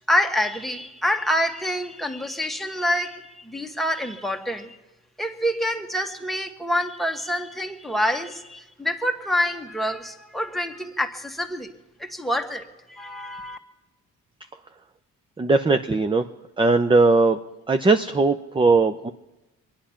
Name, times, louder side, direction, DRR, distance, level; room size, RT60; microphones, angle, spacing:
voice 1, 0.1-4.8 5.2-11.7 12.0-13.6, equal, ahead, 7 dB, 1.4 m, -26 dB
voice 2, 15.4-16.3 16.6-17.4 17.7-19.1, right 3 dB, 15° right, 9 dB, 0.6 m, -19 dB
23.5 x 10.0 x 5.8 m, 1.0 s
cardioid pair, 90°, 30 cm